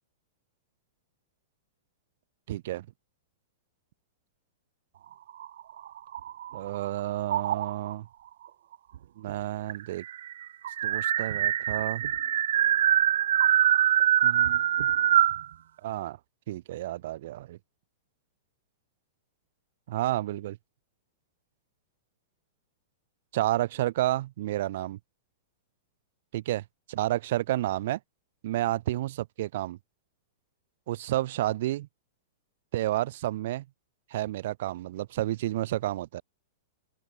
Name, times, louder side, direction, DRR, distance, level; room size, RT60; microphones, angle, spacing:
voice 1, 2.5-2.9 6.5-8.1 9.2-10.0 10.8-12.0 14.2-14.6 15.8-16.2 16.5-17.6 19.9-20.6 23.3-25.0 26.3-26.6 26.9-28.0 28.4-29.8 30.9-31.9 32.7-33.6 34.1-36.2, right 15 dB, 50° right, 4.7 m, -30 dB
sound 1, 5.3-6.8 7.3-7.9 8.9-9.0 9.3-9.4 9.7-15.4, right 11 dB, 65° right, 1.4 m, -24 dB
supercardioid pair, 170°, 0 cm